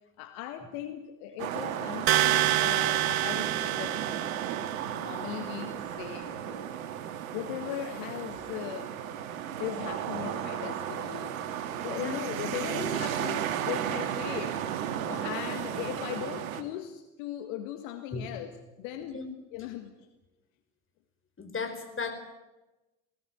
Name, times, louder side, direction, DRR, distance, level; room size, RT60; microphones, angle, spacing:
voice 1, 0.2-4.3 4.9-6.7 7.3-8.9 9.6-11.4 11.8-18.5 18.8-19.2 19.5-19.9, left 11 dB, 75° left, 8 dB, 1.8 m, -38 dB
sound 1, 1.4-16.6, right 9 dB, 80° right, 1.9 m, -34 dB
sound 2, 2.1-5.0, right 17 dB, 60° right, 1.1 m, -27 dB
voice 2, 11.8-12.2 18.1-18.5 19.0-19.3 19.6-19.7 21.4-22.2, left 4 dB, 30° left, 8 dB, 4.9 m, -37 dB
18.5 x 18.0 x 9.3 m, 1.0 s
hypercardioid pair, 60°, 41 cm